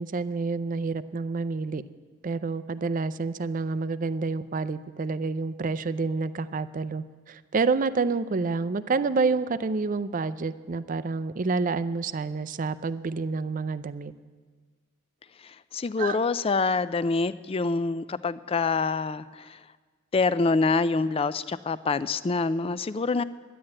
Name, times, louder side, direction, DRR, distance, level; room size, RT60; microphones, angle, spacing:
voice 1, 0.0-1.8 2.2-14.1 16.0-16.2, right 4 dB, 40° right, 14 dB, 0.4 m, -28 dB
voice 2, 15.7-19.6 20.1-23.2, left 4 dB, 25° left, 15 dB, 0.3 m, -26 dB
11.5 x 10.0 x 8.7 m, 1.5 s
head